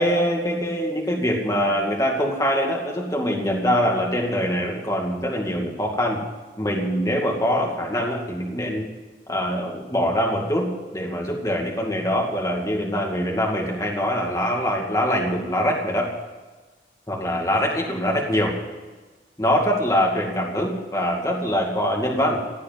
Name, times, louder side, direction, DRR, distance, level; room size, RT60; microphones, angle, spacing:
voice 1, 0.0-6.2 6.6-8.9 9.3-16.1 17.1-18.6 19.4-22.4, equal, 20° left, -1 dB, 2.3 m, -23 dB
16.0 x 8.5 x 9.5 m, 1.3 s
head